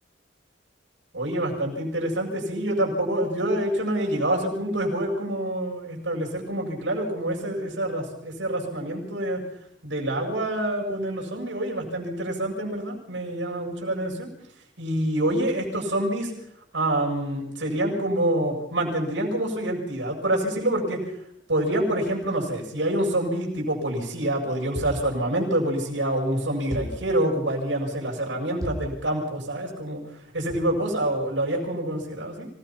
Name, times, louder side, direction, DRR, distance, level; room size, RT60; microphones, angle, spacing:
voice 1, 1.1-9.4 9.8-14.3 14.8-16.3 16.7-21.1 21.5-30.0 30.3-32.5, right 1 dB, 85° right, 0 dB, 7.4 m, -26 dB
sound 1, 24.8-25.2 26.7-27.1 28.6-29.0, equal, 20° right, 4.5 m, -34 dB
26.0 x 18.0 x 6.0 m, 0.76 s
head